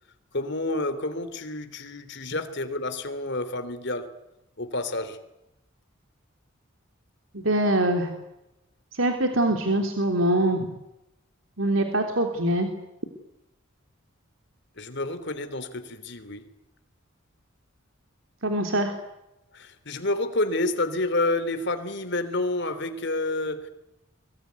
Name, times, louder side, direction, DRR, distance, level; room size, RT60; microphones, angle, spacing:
voice 1, 0.3-4.2 4.6-5.2 14.8-16.5 19.5-23.7, left 2 dB, 55° left, 3.2 m, -29 dB
voice 2, 7.3-8.1 8.9-10.7 11.6-12.7 18.4-18.9, right 1 dB, 70° right, 3.3 m, -23 dB
24.5 x 23.0 x 9.6 m
head